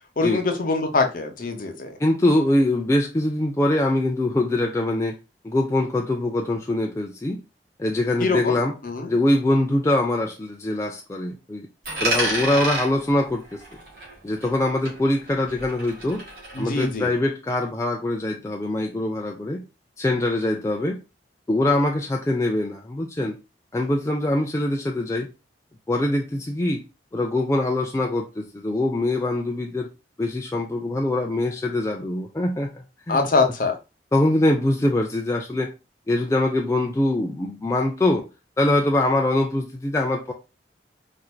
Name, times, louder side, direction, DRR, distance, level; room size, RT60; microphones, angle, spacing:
voice 1, 0.2-2.0 8.2-9.1 16.5-17.1 33.1-33.8, left 3 dB, 50° left, 0.7 m, -24 dB
voice 2, 2.0-5.2 5.4-7.4 7.8-8.7 9.1-11.7 12.0-13.6 14.2-16.2 16.6-19.7 20.0-21.0 21.5-23.4 23.7-25.3 25.9-26.8 27.1-29.9 30.2-33.3 34.1-35.7 36.1-38.3 38.6-40.3, left 1 dB, 15° left, 0.3 m, -23 dB
Coin (dropping), 11.8-14.6 14.9-16.9, right 2 dB, 55° right, 1.9 m, -30 dB
4.3 x 2.5 x 2.2 m
head